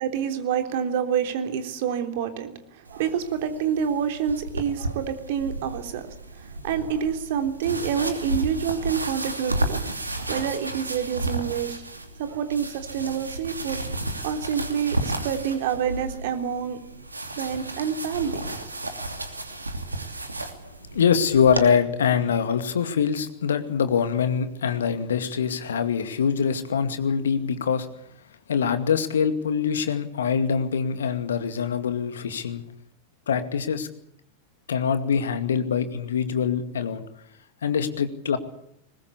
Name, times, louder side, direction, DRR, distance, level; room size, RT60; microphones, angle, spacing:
voice 1, 0.0-6.0 6.3-9.8 10.1-11.8 12.2-13.8 14.2-16.8 17.4-18.7, right 8 dB, 50° right, 6 dB, 3.3 m, -27 dB
sound 1, 2.9-21.7, right 2 dB, 80° right, 2.8 m, -33 dB
voice 2, 20.9-27.9 28.5-32.6 33.3-33.9 34.7-37.0 37.6-38.4, left 7 dB, 65° left, 10 dB, 2.2 m, -24 dB
22.0 x 20.5 x 8.4 m, 0.73 s
figure-of-eight pair, 90°, 0 cm